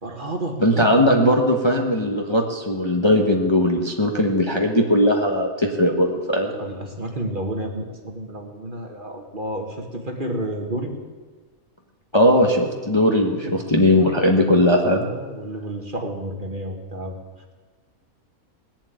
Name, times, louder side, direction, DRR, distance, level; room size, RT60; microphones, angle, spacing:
voice 1, 0.0-0.6 6.5-10.9 13.3-13.5 15.0-17.2, right 1 dB, 35° right, 3 dB, 1.8 m, -31 dB
voice 2, 0.6-6.5 12.1-15.1, left 1 dB, 20° left, 1 dB, 1.2 m, -19 dB
19.0 x 7.4 x 9.3 m, 1.4 s
omnidirectional pair, 1.5 m